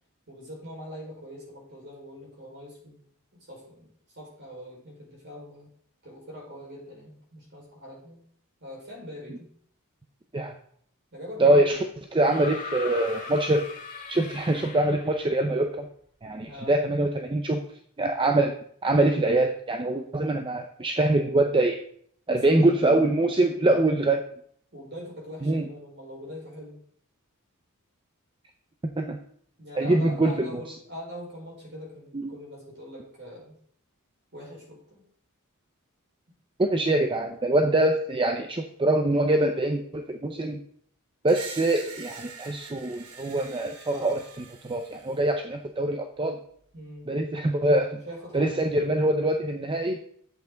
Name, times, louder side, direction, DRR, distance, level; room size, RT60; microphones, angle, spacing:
voice 1, 0.3-3.9 4.1-5.7 6.0-8.2 8.6-9.5 11.1-11.9 16.4-16.8 22.3-23.1 24.7-26.8 29.6-33.6 34.3-35.0 46.7-47.1 48.1-48.9, equal, 50° right, -2 dB, 4.8 m, -42 dB
voice 2, 11.4-11.8 12.1-13.7 14.1-15.9 16.2-17.6 18.0-18.5 18.8-21.8 22.3-24.2 25.4-25.7 29.0-29.2 29.8-30.6 32.1-32.3 36.6-40.6 41.2-46.4 47.1-48.0 48.3-50.0, right 2 dB, 25° right, 5 dB, 0.6 m, -24 dB
sound 1, 12.2-15.3 16.6-16.7, left 4 dB, 35° left, 1.8 m, -39 dB
Screech, 41.3-45.3, right 4 dB, 80° right, 1.3 m, -44 dB
10.5 x 8.1 x 3.9 m, 0.62 s
head